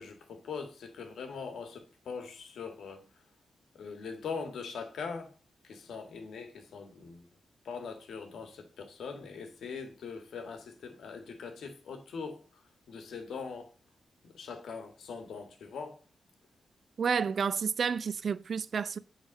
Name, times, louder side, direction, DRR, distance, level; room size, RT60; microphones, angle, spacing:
voice 1, 0.0-3.1 3.7-5.3 5.6-7.3 7.6-13.7 14.2-16.0, left 5 dB, 90° left, 1.7 m, -42 dB
voice 2, 17.0-19.0, right 6 dB, 55° right, 0.4 m, -30 dB
8.9 x 4.1 x 6.4 m
wide cardioid pair, 125°, 0 cm